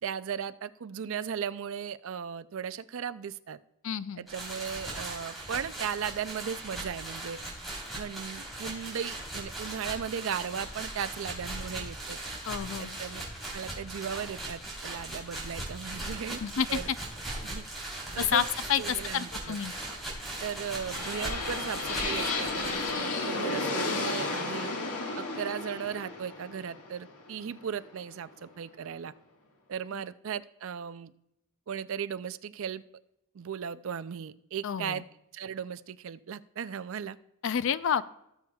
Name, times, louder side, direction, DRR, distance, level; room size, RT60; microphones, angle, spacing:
voice 1, 0.0-3.6 4.2-7.4 7.9-12.2 12.8-13.2 13.5-16.4 16.7-16.9 17.4-17.7 18.1-18.5 18.8-19.6 20.4-24.7 25.2-29.1 29.7-31.1 31.7-32.8 33.3-35.0 35.3-37.2, right 7 dB, 60° right, 14 dB, 0.4 m, -37 dB
voice 2, 3.8-4.2 12.5-13.0 16.4-16.8 18.3-18.4 18.7-18.8 19.1-19.7 34.6-35.0 37.4-38.0, left 8 dB, 60° left, 15 dB, 0.4 m, -29 dB
sound 1, 4.3-22.9, right 1 dB, ahead, 3.5 m, -39 dB
sound 2, 20.2-28.2, left 3 dB, 85° left, 1.6 m, -33 dB
18.0 x 7.1 x 2.3 m, 0.83 s
head